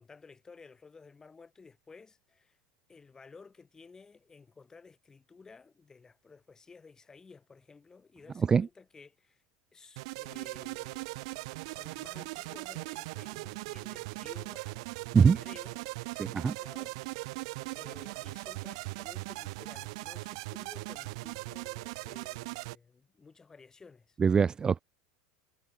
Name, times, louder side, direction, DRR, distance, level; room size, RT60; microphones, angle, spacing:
voice 1, 0.0-2.6 2.9-9.4 9.7-11.1 11.7-17.4 17.8-24.2, left 4 dB, 20° left, 6.5 m, -55 dB
sound 1, 10.0-22.8, right 25 dB, 65° right, 2.1 m, -40 dB
voice 2, 16.2-16.5 24.2-24.8, right 6 dB, 25° right, 0.6 m, -23 dB
hypercardioid pair, 90°, 3 cm